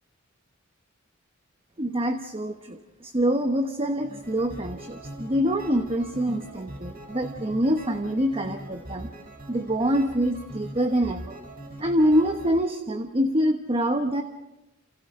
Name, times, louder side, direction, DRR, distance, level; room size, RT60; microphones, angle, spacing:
voice 1, 1.8-9.1 9.5-11.4 11.8-14.2, equal, 30° right, 5 dB, 1.2 m, -25 dB
sound 1, 4.0-12.6, right 1 dB, 45° right, 7.2 m, -41 dB
29.5 x 28.0 x 3.8 m, 0.93 s
head